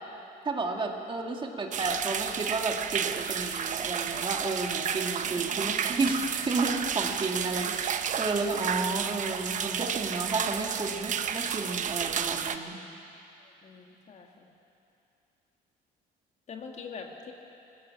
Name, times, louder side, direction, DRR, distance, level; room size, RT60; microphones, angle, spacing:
voice 1, 0.4-12.8, right 3 dB, 30° right, 2 dB, 2.0 m, -32 dB
sound 1, 1.7-12.6, right 8 dB, 50° right, 0.9 m, -31 dB
voice 2, 5.5-6.0 13.4-14.5 16.5-17.3, left 5 dB, 45° left, 2 dB, 2.1 m, -44 dB
19.5 x 15.5 x 8.6 m, 2.8 s
cardioid pair, 110°, 17 cm